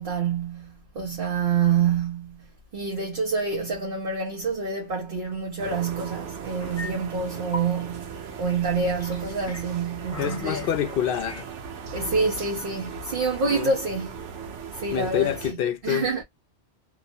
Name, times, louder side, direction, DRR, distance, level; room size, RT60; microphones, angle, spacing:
voice 1, 0.0-2.5 2.7-10.7 11.9-14.2 14.7-16.2, right 5 dB, 55° right, 1.0 m, -27 dB
sound 1, 5.6-15.5, right 6 dB, 80° right, 1.0 m, -38 dB
sound 2, 6.6-6.9 7.2-7.7 8.7-9.6 10.1-10.7 11.1-11.5, left 2 dB, 20° left, 0.4 m, -38 dB
voice 2, 10.2-11.5 13.5-13.7 14.9-16.2, left 9 dB, 60° left, 0.7 m, -27 dB
3.0 x 2.0 x 2.6 m
omnidirectional pair, 1.2 m